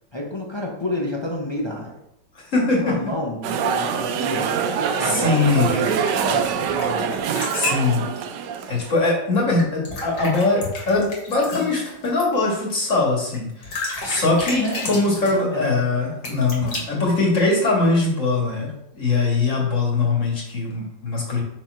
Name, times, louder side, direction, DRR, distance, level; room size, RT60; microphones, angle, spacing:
voice 1, 0.1-2.0 2.8-4.6 5.0-7.3 14.5-15.0 15.3-15.9, left 1 dB, 25° left, -2 dB, 0.5 m, -29 dB
voice 2, 2.4-3.0 5.0-5.7 7.5-8.0 8.7-21.4, left 3 dB, 45° left, -2 dB, 2.1 m, -21 dB
sound 1, 3.4-8.9, right 7 dB, 75° right, 1.2 m, -24 dB
sound 2, 5.1-6.8 7.1-7.9 9.6-12.2 13.3-13.4 13.6-15.4 16.2-16.8, left 3 dB, 65° left, 2.3 m, -32 dB
5.8 x 4.5 x 4.6 m, 0.79 s
omnidirectional pair, 2.0 m